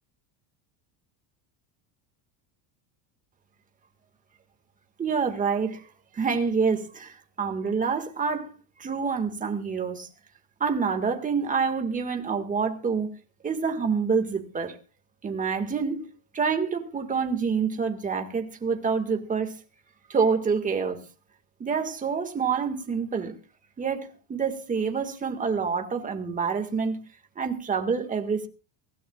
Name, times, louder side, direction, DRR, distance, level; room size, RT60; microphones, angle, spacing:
voice 1, 5.0-5.8 6.2-8.5 8.8-10.1 10.6-13.1 13.4-14.7 15.2-16.1 16.3-19.6 20.1-21.0 21.6-23.3 23.8-27.0 27.4-28.5, right 5 dB, 15° right, 1.8 m, -27 dB
24.5 x 15.5 x 2.4 m
cardioid pair, 165°, 47 cm